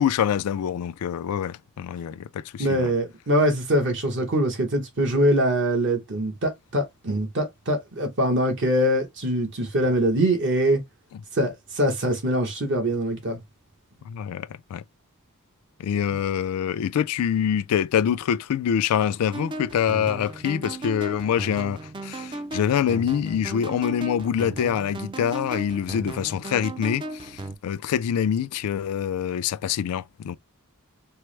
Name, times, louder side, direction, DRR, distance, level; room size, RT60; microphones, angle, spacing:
voice 1, 0.0-2.9 14.1-14.8 15.8-30.3, left 8 dB, 85° left, 0.3 m, -25 dB
voice 2, 2.6-10.8 11.3-13.4, right 1 dB, 55° right, 0.9 m, -23 dB
sound 1, 19.3-27.6, right 2 dB, 20° right, 0.4 m, -36 dB
4.4 x 2.0 x 3.1 m
head